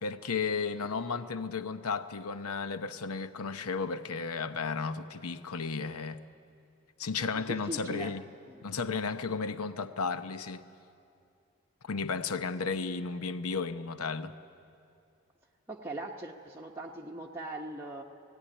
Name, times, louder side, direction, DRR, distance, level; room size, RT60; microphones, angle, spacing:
voice 1, 0.0-6.2 7.0-8.3 8.6-10.6 11.8-14.3, left 5 dB, 90° left, 0.8 m, -34 dB
voice 2, 7.3-8.2 8.5-8.7 15.7-18.0, right 1 dB, 10° right, 0.8 m, -40 dB
17.5 x 17.0 x 9.9 m
head